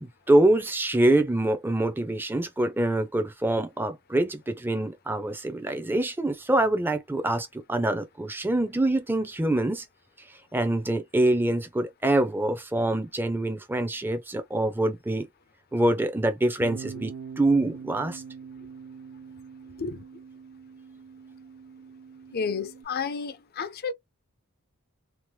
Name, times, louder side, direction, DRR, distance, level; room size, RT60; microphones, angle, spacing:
voice 1, 0.0-9.8 10.5-15.3 15.7-18.2, right 1 dB, 10° right, 0.5 m, -25 dB
Bass guitar, 16.6-22.8, right 6 dB, 75° right, 0.5 m, -43 dB
voice 2, 22.3-23.9, left 5 dB, 45° left, 0.5 m, -31 dB
2.9 x 2.0 x 3.1 m
head